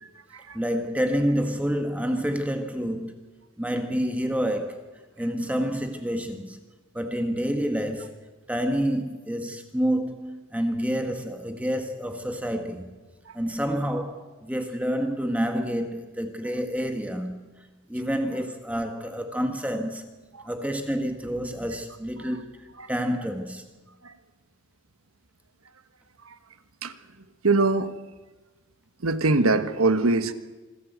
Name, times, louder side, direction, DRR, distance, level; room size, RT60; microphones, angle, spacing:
voice 1, 0.5-3.1 3.6-4.8 5.2-6.6 6.9-8.1 8.5-12.8 13.3-17.4 17.9-20.1 20.4-23.6, equal, 5° right, 1.6 m, -28 dB
voice 2, 27.4-27.9 29.0-30.3, right 3 dB, 80° right, 1.3 m, -23 dB
25.5 x 14.5 x 8.2 m
head